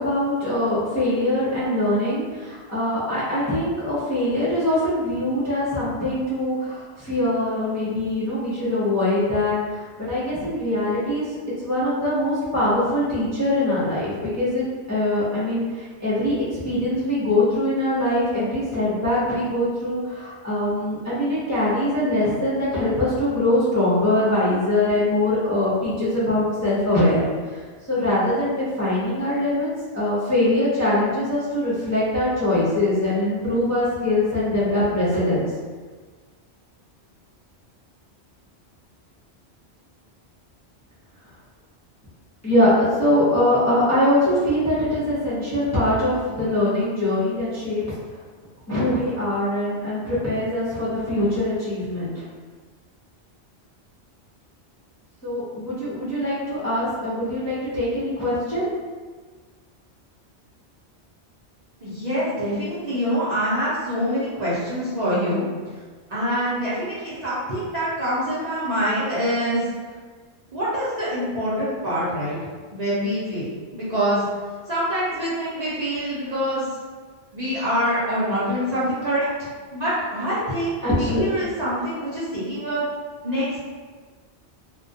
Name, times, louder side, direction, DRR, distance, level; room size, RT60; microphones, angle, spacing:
voice 1, 0.0-11.2 11.6-27.2 27.9-29.7 29.9-35.5 42.4-42.7 43.0-47.8 48.7-52.3 55.2-58.7 80.8-81.2, left 1 dB, 20° left, -11 dB, 0.5 m, -22 dB
voice 2, 61.8-65.4 66.1-69.7 70.5-72.4 72.7-73.5 73.7-74.2 74.7-76.6 77.3-82.8 83.2-83.6, equal, 45° right, -10 dB, 0.6 m, -25 dB
2.2 x 2.1 x 2.6 m, 1.4 s
omnidirectional pair, 1.1 m